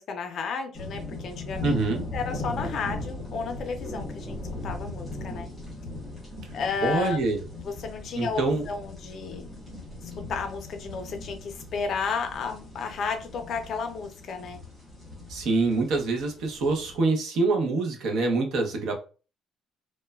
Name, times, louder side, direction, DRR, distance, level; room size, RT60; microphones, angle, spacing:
voice 1, 0.0-1.8 2.1-4.4 4.6-5.5 6.5-7.2 7.6-8.4 8.7-9.5 10.0-14.6, left 5 dB, 45° left, 0.4 m, -32 dB
sound 1, 0.7-17.0, left 2 dB, 10° right, 1.1 m, -39 dB
voice 2, 1.6-2.0 6.8-7.4 8.2-8.6 15.3-18.9, right 3 dB, 65° right, 0.7 m, -25 dB
3.0 x 2.1 x 2.2 m
cardioid pair, 175°, 0 cm